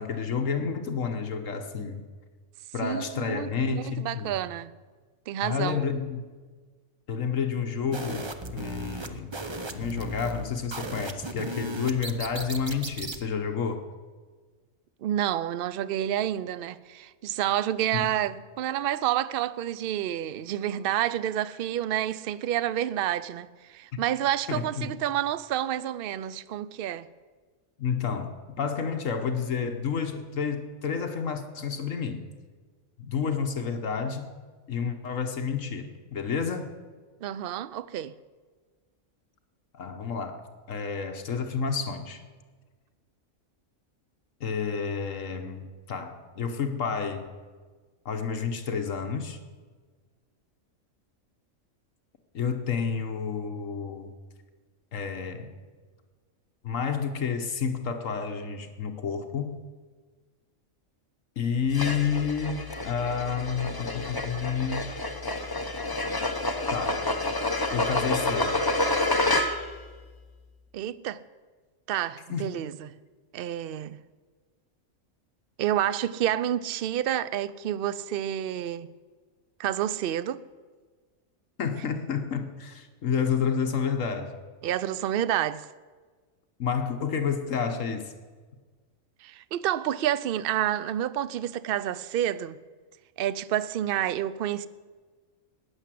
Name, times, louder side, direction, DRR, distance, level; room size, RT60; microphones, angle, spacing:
voice 1, 0.0-2.0 2.7-4.4 5.4-6.3 7.1-9.3 9.7-13.9 17.9-18.1 24.5-25.0 27.8-32.2 33.0-34.3 34.7-36.7 39.7-40.4 40.7-42.2 44.4-47.3 48.0-49.4 52.3-54.1 54.9-55.5 56.6-59.6 61.4-64.9 66.7-67.1 67.7-68.7 72.3-72.6 81.6-84.4 86.6-88.1, left 6 dB, 70° left, 1.5 m, -30 dB
voice 2, 2.8-4.7 5.3-5.9 15.0-27.1 37.2-38.1 70.7-71.2 71.9-72.9 73.3-74.0 75.6-78.9 79.6-80.4 84.6-85.7 89.2-92.6 93.2-94.7, right 11 dB, 60° right, 0.6 m, -29 dB
sound 1, 7.9-13.2, right 2 dB, 25° right, 0.7 m, -36 dB
sound 2, 61.7-69.8, left 2 dB, 20° left, 0.8 m, -28 dB
15.0 x 9.8 x 7.6 m
omnidirectional pair, 1.4 m